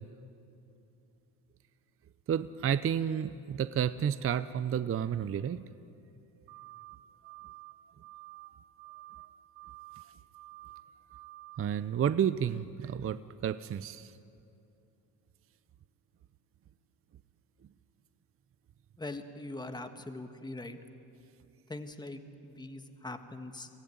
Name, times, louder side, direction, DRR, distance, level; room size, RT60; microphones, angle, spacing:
voice 1, 2.3-5.6 11.6-14.1, right 9 dB, 35° right, 14 dB, 0.6 m, -31 dB
sound 1, 6.5-7.0 7.2-7.7 8.0-8.5 8.8-9.3 9.6-10.0 10.3-10.8 11.1-11.6, right 21 dB, 80° right, 1.3 m, -49 dB
voice 2, 19.0-20.8 21.7-23.7, left 2 dB, 10° left, 7 dB, 1.6 m, -42 dB
23.5 x 15.5 x 9.6 m, 2.7 s
supercardioid pair, 85°, 41 cm